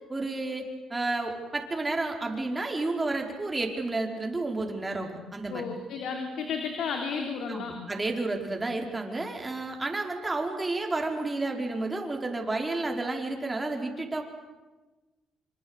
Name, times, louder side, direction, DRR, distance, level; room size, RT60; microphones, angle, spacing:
voice 1, 0.1-0.6 0.9-5.6 7.5-14.2, right 2 dB, 20° right, 2 dB, 5.1 m, -31 dB
voice 2, 5.5-7.7, left 5 dB, 75° left, 4 dB, 3.5 m, -33 dB
26.5 x 26.0 x 8.3 m, 1.2 s
cardioid pair, 90°, 0 cm